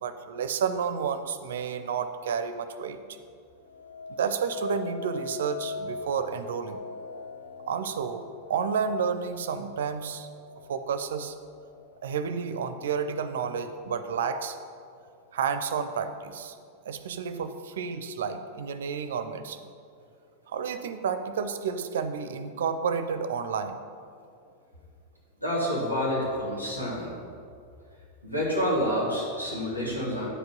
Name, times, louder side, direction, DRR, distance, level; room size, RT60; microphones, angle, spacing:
voice 1, 0.0-3.0 4.2-6.8 7.7-10.3 10.7-11.4 12.0-14.6 15.3-16.6 16.8-19.7 20.5-23.8, right 6 dB, 60° right, 11 dB, 0.5 m, -30 dB
sound 1, 3.6-12.8 13.3-13.8, left 4 dB, 70° left, 0.6 m, -42 dB
voice 2, 25.4-27.1 28.2-30.3, equal, 90° left, -6 dB, 2.3 m, -28 dB
9.8 x 5.2 x 5.3 m, 2.4 s
figure-of-eight pair, 90°, 0 cm